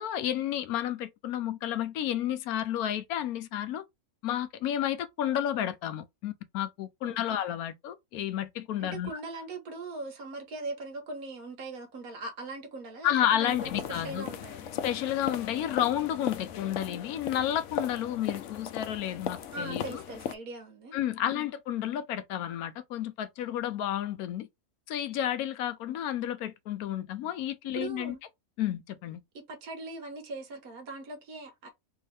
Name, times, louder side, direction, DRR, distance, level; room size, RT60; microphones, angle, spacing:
voice 1, 0.0-3.8 4.2-9.1 13.0-14.3 14.8-20.0 20.9-24.5 24.9-28.2 28.6-29.2, left 11 dB, 85° left, 1.1 m, -31 dB
voice 2, 7.0-7.4 8.8-14.7 19.5-21.0 21.3-21.4 27.7-28.2 29.3-31.7, right 3 dB, 75° right, 1.6 m, -40 dB
sound 1, 13.5-20.4, left 9 dB, 65° left, 0.8 m, -37 dB
3.3 x 2.8 x 3.2 m
omnidirectional pair, 1.5 m